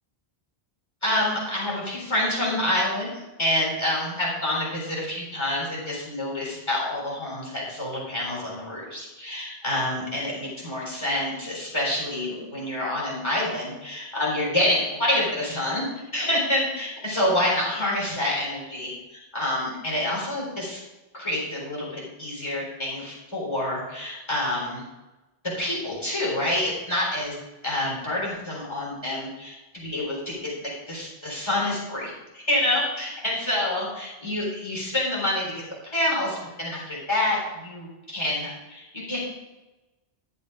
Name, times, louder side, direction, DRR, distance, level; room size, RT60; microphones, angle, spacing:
voice 1, 1.0-3.1 3.4-15.9 16.1-20.8 21.1-24.8 25.6-27.4 27.6-30.5 30.9-39.2, left 1 dB, 25° left, -5 dB, 3.9 m, -27 dB
11.5 x 6.8 x 4.9 m, 1.1 s
omnidirectional pair, 1.1 m